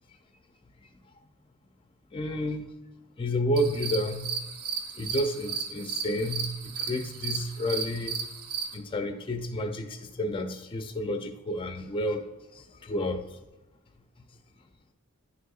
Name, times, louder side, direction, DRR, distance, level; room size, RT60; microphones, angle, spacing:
voice 1, 2.1-2.6 3.2-4.3 5.0-8.2 8.7-12.2 12.9-13.2, left 1 dB, 25° left, 6 dB, 0.4 m, -30 dB
sound 1, 3.6-8.8, right 6 dB, 65° right, 0.8 m, -35 dB
9.5 x 6.4 x 2.4 m, 1.0 s
head